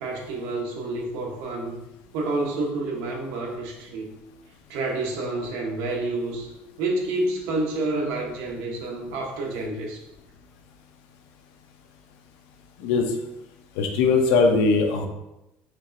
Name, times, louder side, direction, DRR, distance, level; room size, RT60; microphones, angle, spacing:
voice 1, 0.0-1.8 2.1-4.1 4.7-6.5 6.8-10.0, right 2 dB, 85° right, 0 dB, 0.9 m, -29 dB
voice 2, 13.8-15.1, left 4 dB, 85° left, 4 dB, 0.6 m, -20 dB
4.4 x 2.9 x 2.6 m, 0.93 s
cardioid pair, 170°, 5 cm